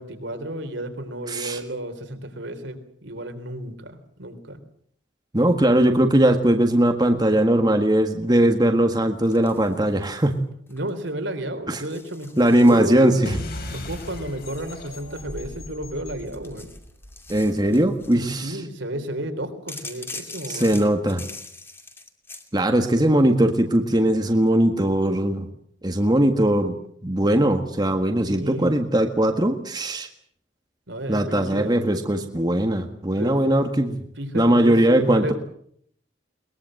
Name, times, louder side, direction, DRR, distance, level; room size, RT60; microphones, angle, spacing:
voice 1, 0.0-4.6 10.7-16.7 18.2-20.7 28.3-28.7 30.9-31.8 33.2-33.4 34.2-35.3, right 1 dB, 70° right, 7 dB, 3.7 m, -32 dB
voice 2, 1.3-1.6 5.3-10.3 11.7-11.8 12.4-13.4 17.3-18.6 20.5-21.2 22.5-25.5 25.8-26.8 27.0-30.1 31.1-34.0 34.3-35.3, right 1 dB, 20° right, 5 dB, 1.6 m, -20 dB
sound 1, 9.3-10.3 10.7-11.1 11.7-13.4 14.0-15.7 16.2-18.3 19.7-22.5, left 3 dB, 10° left, 2.5 m, -42 dB
sound 2, 13.2-18.2, left 1 dB, 50° left, 5.9 m, -38 dB
22.5 x 21.0 x 7.7 m, 0.66 s
head